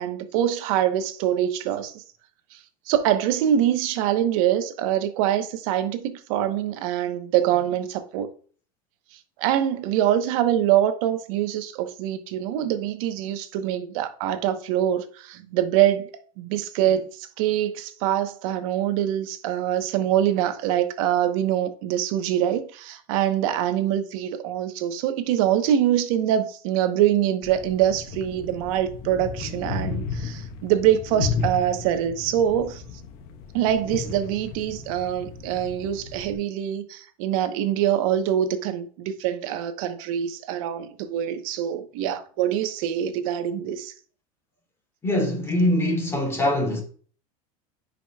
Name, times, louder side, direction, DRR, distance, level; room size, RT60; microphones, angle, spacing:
voice 1, 0.0-2.0 2.5-2.6 2.9-8.3 9.1-16.1 16.4-32.8 33.5-43.9, right 11 dB, 70° right, 1.0 m, -24 dB
sound 1, 27.4-36.3, left 5 dB, 55° left, 1.1 m, -34 dB
voice 2, 45.0-46.8, left 1 dB, 15° left, 2.6 m, -23 dB
10.0 x 5.1 x 2.3 m
supercardioid pair, 125°, 18 cm